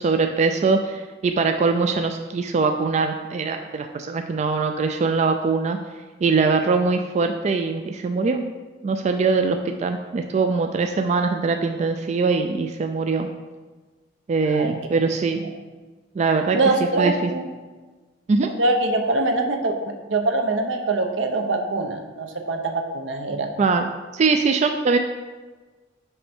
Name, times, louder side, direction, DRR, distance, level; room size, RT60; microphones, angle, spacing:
voice 1, 0.0-5.8 6.2-8.4 8.8-13.3 14.3-15.4 16.2-16.6 17.0-17.3 18.3-18.5 23.6-25.0, right 4 dB, 35° right, 6 dB, 0.3 m, -22 dB
voice 2, 14.4-14.8 15.4-15.5 16.5-17.4 18.6-19.7 20.1-23.5, right 2 dB, 80° right, 5 dB, 0.7 m, -23 dB
5.4 x 5.4 x 4.4 m, 1.3 s
head